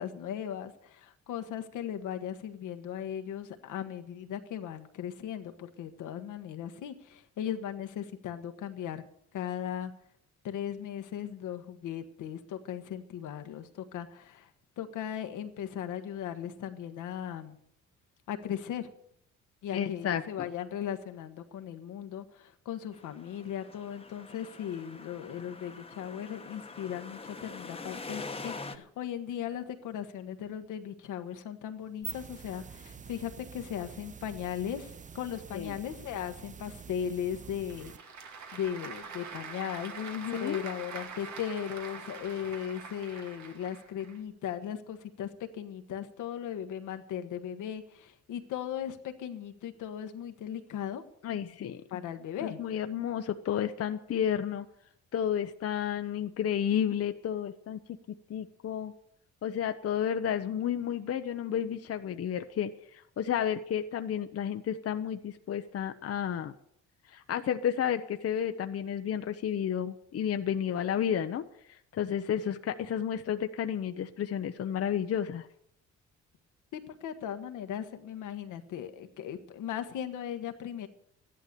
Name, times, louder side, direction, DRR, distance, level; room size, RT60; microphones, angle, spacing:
voice 1, 0.0-9.0 9.3-9.9 10.4-14.5 14.8-17.6 18.3-18.9 19.6-37.9 38.5-51.0 51.9-52.6 76.7-80.9, left 9 dB, 80° left, 7 dB, 1.4 m, -37 dB
voice 2, 19.7-20.2 35.5-35.8 39.9-40.6 51.2-51.8 52.4-54.7 55.1-57.8 58.3-58.9 59.4-66.5 67.1-75.5, left 9 dB, 50° left, 8 dB, 0.8 m, -31 dB
sound 1, 22.9-28.8, left 3 dB, 20° left, 1.2 m, -44 dB
sound 2, 31.8-38.0, right 6 dB, 25° right, 0.5 m, -46 dB
Applause / Crowd, 37.4-44.2, right 5 dB, 70° right, 2.2 m, -44 dB
13.0 x 11.5 x 6.8 m, 0.71 s
cardioid pair, 90°, 30 cm